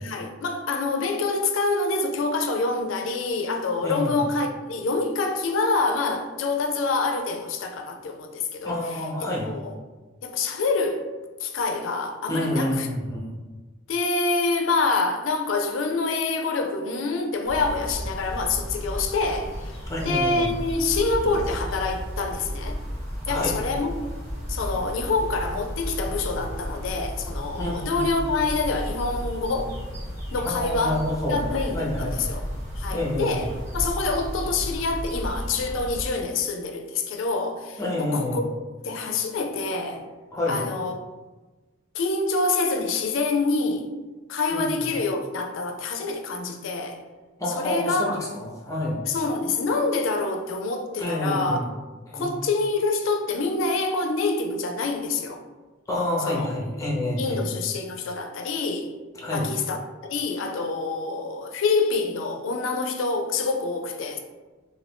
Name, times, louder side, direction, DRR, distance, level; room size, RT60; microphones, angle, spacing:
voice 1, 0.0-9.7 10.2-11.1 11.4-12.9 13.9-19.8 20.0-22.8 23.3-24.0 24.5-29.8 30.3-31.0 31.3-32.4 32.8-38.5 38.8-40.0 40.5-41.0 41.9-43.9 44.3-47.0 47.5-48.2 49.1-51.6 52.1-55.4 56.3-56.5 57.2-58.9 59.3-64.2, left 3 dB, 70° left, 0.4 m, -26 dB
voice 2, 3.8-4.2 8.6-9.5 12.3-13.3 19.9-20.5 23.3-23.5 27.6-28.0 30.4-32.2 32.9-33.5 37.8-38.5 40.3-40.6 44.5-44.9 47.4-49.0 51.0-51.7 52.1-52.3 55.9-57.5 59.2-59.5, left 1 dB, 15° left, 0.6 m, -28 dB
sound 1, 17.4-36.1, equal, 20° right, 1.0 m, -33 dB
2.6 x 2.6 x 3.3 m
head